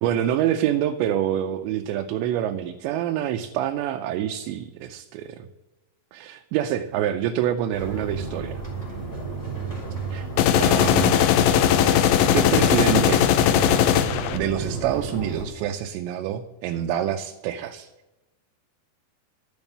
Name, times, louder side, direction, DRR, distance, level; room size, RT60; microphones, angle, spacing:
voice 1, 0.0-5.5 6.1-8.6 10.1-10.3 10.6-11.3 12.3-13.2 14.3-17.9, right 11 dB, 85° right, 4 dB, 2.9 m, -26 dB
sound 1, 7.7-15.4, right 4 dB, 5° left, 2.7 m, -32 dB
sound 2, 10.4-14.4, left 10 dB, 85° left, 3.1 m, -19 dB
12.0 x 7.2 x 8.0 m, 1.0 s
omnidirectional pair, 5.1 m